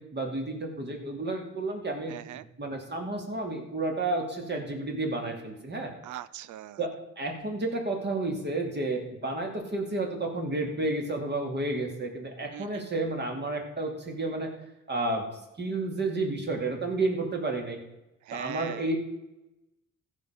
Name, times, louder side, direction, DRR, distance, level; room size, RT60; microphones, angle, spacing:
voice 1, 0.0-2.1 2.6-5.9 6.8-14.5 14.9-15.3 15.6-17.8 18.3-19.0, right 2 dB, 35° right, 2 dB, 2.8 m, -31 dB
voice 2, 2.1-2.5 6.0-6.8 12.5-12.8 18.2-18.9, right 13 dB, 75° right, 18 dB, 0.6 m, -40 dB
15.0 x 5.4 x 5.9 m, 0.96 s
cardioid pair, 90°, 30 cm